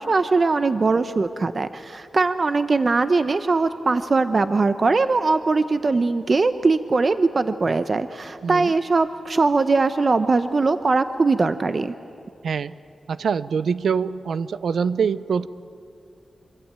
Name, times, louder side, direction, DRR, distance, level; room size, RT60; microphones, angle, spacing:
voice 1, 0.0-11.9, right 3 dB, 45° right, 11 dB, 0.7 m, -21 dB
voice 2, 8.4-8.7 12.4-12.7 13.1-15.5, right 6 dB, 90° right, 16 dB, 0.6 m, -24 dB
24.5 x 23.5 x 8.8 m, 2.5 s
wide cardioid pair, 105°, 0 cm